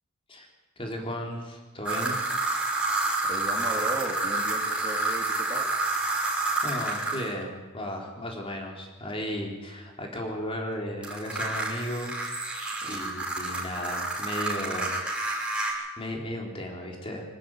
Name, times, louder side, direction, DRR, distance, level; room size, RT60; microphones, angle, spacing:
voice 1, 0.8-2.2 6.6-12.1 12.9-14.9 15.2-15.4 16.0-17.2, equal, 25° left, 0 dB, 4.0 m, -35 dB
sound 1, 1.9-7.3 11.0-15.7, right 2 dB, 5° right, 5.9 m, -29 dB
voice 2, 3.2-5.7 12.8-13.0 13.8-13.9, right 2 dB, 25° right, 1 dB, 3.1 m, -36 dB
26.0 x 12.5 x 9.2 m, 1.2 s
head